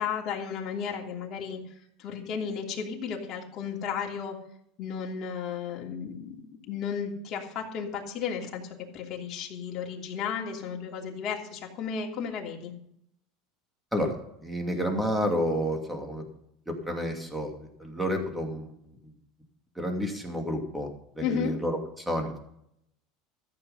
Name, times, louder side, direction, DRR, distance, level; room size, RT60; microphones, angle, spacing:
voice 1, 0.0-1.6 2.0-4.4 4.8-6.4 6.7-8.6 8.9-12.7 21.2-21.5, left 7 dB, 45° left, -1 dB, 3.0 m, -33 dB
voice 2, 14.4-16.3 16.7-18.7 19.0-19.1 19.8-22.4, equal, 5° right, 3 dB, 2.6 m, -30 dB
14.5 x 8.0 x 5.5 m, 0.72 s
supercardioid pair, 130°, 0 cm